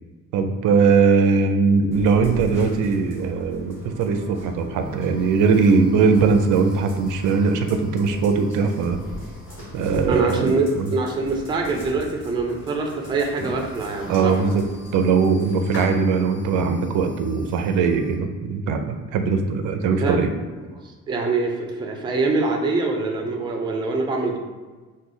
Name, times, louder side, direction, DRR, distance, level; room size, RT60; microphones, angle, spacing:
voice 1, 0.3-9.0 9.7-10.9 14.1-14.6 14.9-20.3, right 5 dB, 85° right, 6 dB, 0.5 m, -20 dB
sound 1, 1.9-15.9, left 1 dB, 45° left, 1.4 m, -39 dB
sound 2, 3.5-18.2, left 1 dB, 60° left, 1.1 m, -46 dB
voice 2, 10.1-10.6 10.9-14.5 19.9-20.2 21.1-24.4, right 3 dB, 15° right, 2 dB, 0.3 m, -24 dB
3.2 x 2.2 x 3.7 m, 1.3 s
cardioid pair, 155°, 30 cm